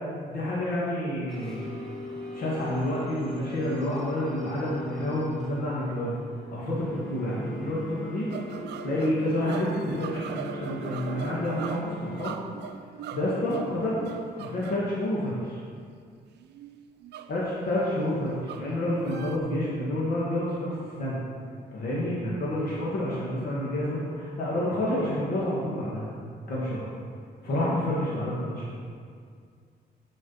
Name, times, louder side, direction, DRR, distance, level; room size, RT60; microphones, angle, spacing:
voice 1, 0.3-1.6 2.3-6.1 6.5-8.3 8.8-12.3 13.1-14.0 14.3-15.6 17.3-20.7 21.0-21.2 21.7-26.0 26.5-26.8 27.4-28.8, left 1 dB, 60° left, -7 dB, 1.8 m, -29 dB
sound 1, 1.3-12.2, left 1 dB, ahead, 1.6 m, -40 dB
sound 2, 8.3-14.9 16.4-17.4 18.4-19.4, right 9 dB, 85° right, 0.5 m, -40 dB
9.8 x 5.1 x 5.5 m, 2.1 s
cardioid pair, 175°, 17 cm